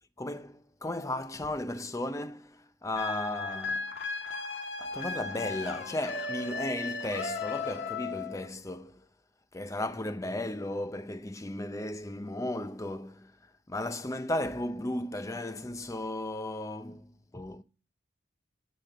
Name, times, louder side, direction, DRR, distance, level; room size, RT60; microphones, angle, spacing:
voice 1, 0.2-3.9 4.8-9.1 9.5-13.4 13.7-17.6, left 1 dB, 15° left, 0.6 m, -35 dB
sound 1, 3.0-8.5, left 4 dB, 65° left, 1.7 m, -36 dB
12.5 x 4.4 x 8.4 m
head